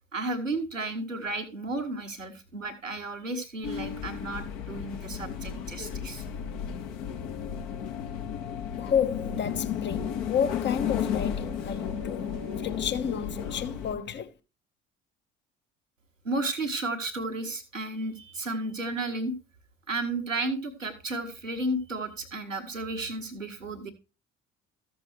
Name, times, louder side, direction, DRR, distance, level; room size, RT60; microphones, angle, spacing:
voice 1, 0.1-6.2 16.2-19.3 19.9-23.9, right 2 dB, 90° right, 1.2 m, -33 dB
sound 1, 3.6-13.9, left 8 dB, 60° left, 1.6 m, -33 dB
voice 2, 8.8-12.3 12.6-14.3, left 8 dB, 30° left, 1.0 m, -31 dB
14.0 x 6.8 x 3.1 m
figure-of-eight pair, 55°, 38 cm